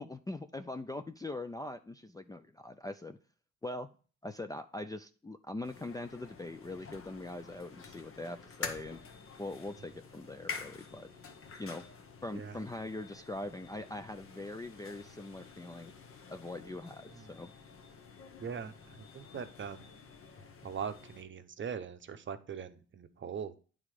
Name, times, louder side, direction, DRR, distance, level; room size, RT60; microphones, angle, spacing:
voice 1, 0.0-3.2 3.6-3.9 4.2-9.0 9.4-11.1 11.6-11.8 12.2-15.9 16.3-17.5, left 2 dB, 10° left, 5 dB, 0.4 m, -42 dB
sound 1, 5.6-21.2, left 5 dB, 45° left, 1.1 m, -48 dB
voice 2, 18.4-19.9 20.6-23.6, right 7 dB, 40° right, 10 dB, 0.8 m, -41 dB
8.8 x 3.7 x 4.8 m, 0.38 s
cardioid pair, 90°, 30 cm